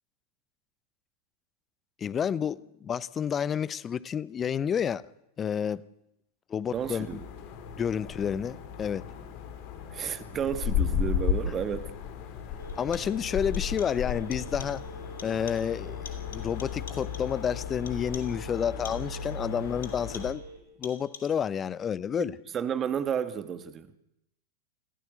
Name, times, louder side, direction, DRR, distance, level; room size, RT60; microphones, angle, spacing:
voice 1, 2.0-5.1 5.4-5.8 6.5-7.2 7.8-9.1 12.8-14.8 15.2-20.4 20.8-22.3, left 8 dB, 25° left, 0.8 m, -30 dB
sound 1, 6.7-20.3, left 8 dB, 45° left, 3.5 m, -35 dB
voice 2, 6.7-7.3 9.9-11.9 22.2-23.9, right 8 dB, 25° right, 1.7 m, -32 dB
sound 2, 11.6-11.7 12.7-13.3 13.5-14.1 14.3-14.9 15.2-15.8 16.0-17.4 17.9-18.4 18.8-19.4 19.8-20.5 20.8-21.5, left 7 dB, 65° left, 3.3 m, -48 dB
Telephone, 12.6-20.6, right 3 dB, 75° right, 7.0 m, -47 dB
28.5 x 15.5 x 8.1 m
figure-of-eight pair, 90°, 0 cm